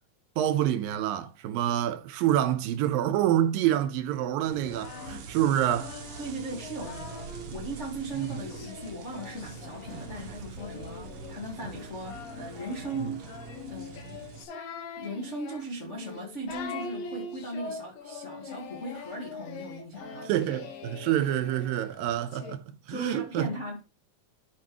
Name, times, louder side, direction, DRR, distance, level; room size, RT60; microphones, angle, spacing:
voice 1, 0.4-5.9 20.3-23.5, right 12 dB, 80° right, 2.4 m, -27 dB
sound 1, 4.4-14.4, right 5 dB, 60° right, 1.5 m, -44 dB
Singing, 4.5-7.5 8.1-22.6, left 4 dB, 75° left, 2.9 m, -43 dB
voice 2, 6.2-13.3 13.7-14.2 14.9-20.3 22.9-23.8, right 1 dB, 40° left, 1.0 m, -38 dB
12.0 x 5.5 x 3.0 m
omnidirectional pair, 4.1 m